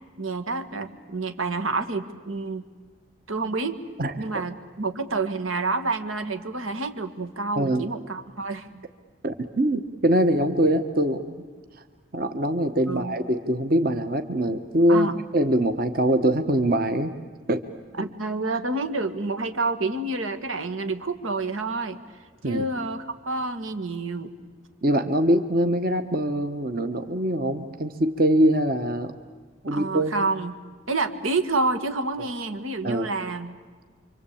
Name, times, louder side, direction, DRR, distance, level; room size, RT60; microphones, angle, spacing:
voice 1, 0.2-2.6 3.3-3.8 4.2-8.9 12.9-13.1 14.9-15.2 18.0-22.0 22.4-24.4 29.7-30.5 30.9-33.5, right 3 dB, 90° right, 8 dB, 1.9 m, -28 dB
voice 2, 4.0-4.4 7.6-7.8 9.2-11.4 12.1-15.1 15.3-17.1 17.5-17.6 18.0-18.1 22.4-22.7 24.8-29.1 29.6-30.3 32.8-33.1, right 1 dB, 45° right, 8 dB, 1.2 m, -23 dB
27.0 x 25.0 x 8.6 m, 1.5 s
head